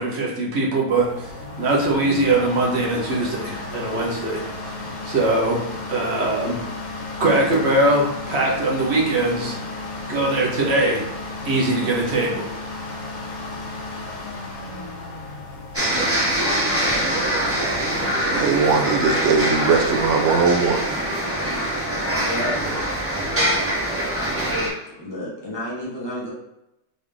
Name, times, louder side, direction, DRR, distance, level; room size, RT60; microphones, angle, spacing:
voice 1, 0.0-1.3 1.6-5.6 5.9-6.6 7.2-9.6 10.1-11.1 11.4-12.4, right 2 dB, 45° right, -3 dB, 1.2 m, -21 dB
sound 1, 1.0-19.9, left 2 dB, 60° left, 0.4 m, -34 dB
sound 2, 15.7-24.7, right 1 dB, 10° right, 0.8 m, -23 dB
voice 2, 18.3-20.8, right 5 dB, 80° right, 4 dB, 0.6 m, -20 dB
voice 3, 21.8-22.8 24.9-26.3, left 1 dB, 15° left, -7 dB, 1.3 m, -31 dB
3.9 x 3.5 x 3.5 m, 0.87 s
omnidirectional pair, 1.8 m